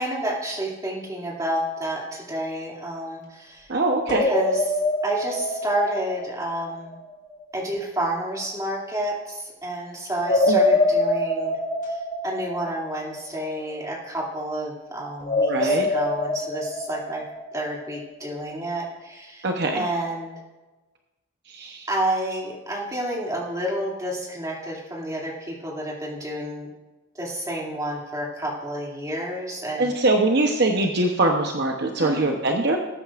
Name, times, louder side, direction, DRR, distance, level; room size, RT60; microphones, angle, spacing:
voice 1, 0.0-3.7 4.2-7.0 7.5-11.6 11.8-17.2 17.5-19.5 19.7-20.3 21.9-26.7 27.1-29.9 32.0-32.3, right 1 dB, 15° right, -4 dB, 2.6 m, -30 dB
voice 2, 3.7-4.3 10.5-10.6 15.5-15.9 19.4-19.8 21.5-21.9 29.8-32.8, right 2 dB, 55° right, 2 dB, 0.9 m, -22 dB
sound 1, 4.1-7.0 10.2-13.5 15.2-18.0, left 2 dB, 40° left, 1.9 m, -25 dB
19.5 x 9.1 x 2.5 m, 1.1 s
head